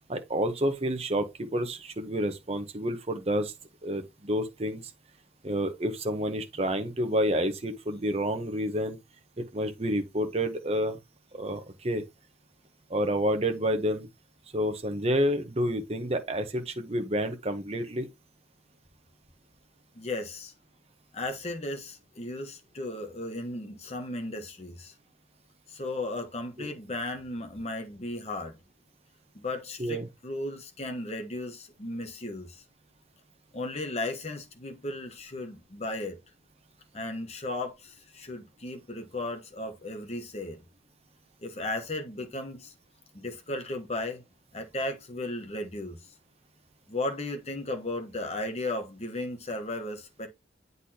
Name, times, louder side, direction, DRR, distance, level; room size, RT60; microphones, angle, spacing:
voice 1, 0.1-3.5 3.8-4.8 5.4-9.0 9.4-11.0 11.3-12.0 12.9-14.1 14.5-18.1 26.6-26.7 29.8-30.1, equal, 35° right, 0.9 m, -29 dB
voice 2, 19.9-20.5 21.1-24.9 25.7-28.6 29.3-32.6 33.5-36.2 36.9-40.6 41.4-42.7 43.1-44.2 44.5-46.0 46.9-50.3, left 2 dB, 35° left, 1.1 m, -35 dB
8.2 x 4.0 x 2.8 m
head